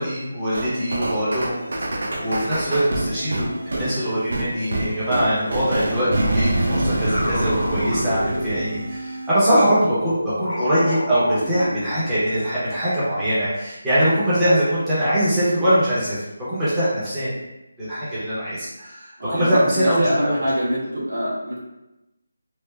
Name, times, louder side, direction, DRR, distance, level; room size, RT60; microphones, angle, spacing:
voice 1, 0.0-1.6 1.9-16.2 16.5-17.3 17.8-20.3, equal, 5° right, -12 dB, 0.7 m, -22 dB
sound 1, 0.5-9.3, right 1 dB, 55° right, 0.5 m, -26 dB
sound 2, 6.2-9.0 9.6-12.3, left 1 dB, 50° left, 0.9 m, -30 dB
voice 2, 19.2-21.6, equal, 85° right, -7 dB, 1.3 m, -24 dB
3.2 x 2.5 x 2.3 m, 0.96 s
figure-of-eight pair, 175°, 0 cm